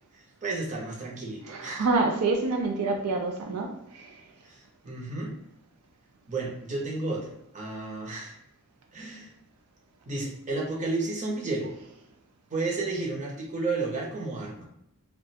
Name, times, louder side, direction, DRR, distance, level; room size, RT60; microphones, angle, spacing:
voice 1, 0.4-1.9 4.4-5.3 6.3-8.4 8.9-9.3 10.0-11.7 12.5-14.7, right 3 dB, 35° right, -3 dB, 0.8 m, -32 dB
voice 2, 1.5-3.7, right 3 dB, 85° right, 3 dB, 0.4 m, -26 dB
2.4 x 2.2 x 4.0 m, 0.81 s
head